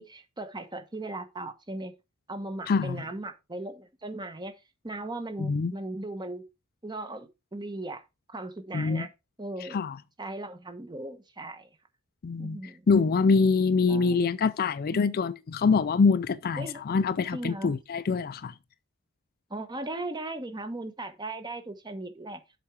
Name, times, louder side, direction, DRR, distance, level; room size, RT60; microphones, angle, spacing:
voice 1, 0.0-1.9 2.3-4.6 4.8-6.4 6.8-8.0 8.3-9.1 9.4-9.8 10.2-11.7 12.4-12.9 13.9-14.2 14.9-15.2 16.6-17.0 17.3-17.7 19.5-22.4, right 2 dB, 20° right, 1.0 m, -38 dB
voice 2, 2.7-3.0 5.4-5.7 8.7-9.1 9.6-10.0 12.2-12.6 12.9-18.5, left 4 dB, 45° left, 0.4 m, -25 dB
7.3 x 4.9 x 4.7 m
head